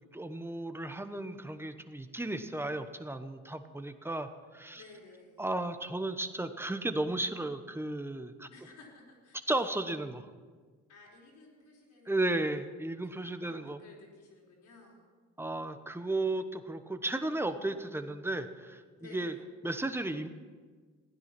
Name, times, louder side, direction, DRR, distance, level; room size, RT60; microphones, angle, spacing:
voice 1, 0.1-4.8 5.4-8.5 9.5-10.3 12.1-13.8 15.4-18.8 19.1-19.3 19.6-20.3, right 2 dB, 10° right, 8 dB, 1.0 m, -34 dB
voice 2, 4.7-5.5 8.5-9.4 10.9-12.6 13.0-15.1 19.0-19.4, left 3 dB, 80° left, -2 dB, 4.5 m, -55 dB
15.5 x 10.5 x 6.0 m, 1.5 s
cardioid pair, 90°, 30 cm